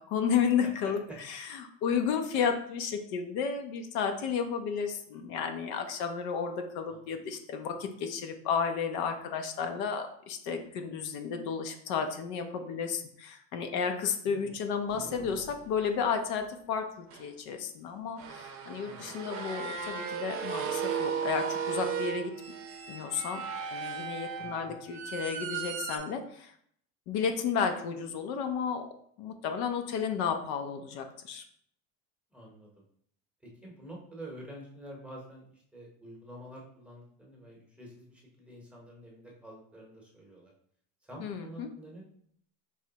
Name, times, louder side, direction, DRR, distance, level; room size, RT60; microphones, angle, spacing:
voice 1, 0.0-1.0 1.3-22.3 22.9-23.4 23.7-26.5 27.1-28.8 29.2-31.4 41.2-41.7, left 6 dB, 65° left, 5 dB, 0.6 m, -32 dB
voice 2, 0.6-1.2 6.9-7.2 14.3-14.6 18.8-19.2 24.4-24.8 32.3-32.8 33.4-40.5 41.0-42.0, right 1 dB, 5° right, -2 dB, 0.9 m, -48 dB
sound 1, 14.9-15.7 17.1-17.2 18.2-26.0, right 6 dB, 45° right, 0.6 m, -36 dB
4.8 x 3.1 x 2.8 m, 0.65 s
cardioid pair, 145°, 33 cm